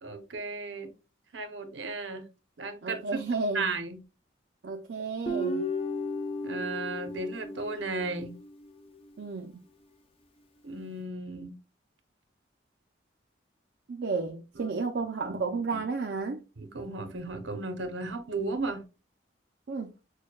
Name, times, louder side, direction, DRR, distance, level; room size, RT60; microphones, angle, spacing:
voice 1, 0.0-0.9 1.3-2.3 2.6-3.0 3.5-4.0 6.4-8.3 10.6-11.6 14.6-14.8 15.2-15.8 16.6-18.8, right 3 dB, 80° right, 0.8 m, -35 dB
voice 2, 2.8-3.8 4.6-5.7 9.2-9.6 13.9-16.4 19.7-19.9, right 4 dB, 65° right, 0.4 m, -32 dB
Guitar, 5.3-8.6, left 1 dB, 30° left, 0.6 m, -34 dB
6.3 x 2.2 x 2.3 m
head